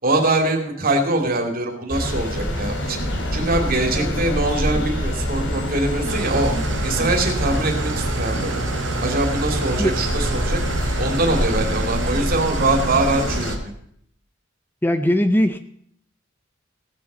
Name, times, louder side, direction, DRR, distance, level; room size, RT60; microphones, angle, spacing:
voice 1, 0.0-3.0 3.3-6.5 6.8-8.6 9.0-10.6 11.0-13.7, right 2 dB, 50° right, 3 dB, 2.7 m, -23 dB
sound 1, 1.9-13.6, equal, 65° left, 3.5 m, -25 dB
Engine starting / Idling, 6.1-13.6, right 4 dB, 65° right, 1.0 m, -29 dB
voice 2, 14.8-15.6, left 1 dB, 10° left, 9 dB, 0.6 m, -19 dB
17.0 x 7.7 x 6.8 m, 0.67 s
head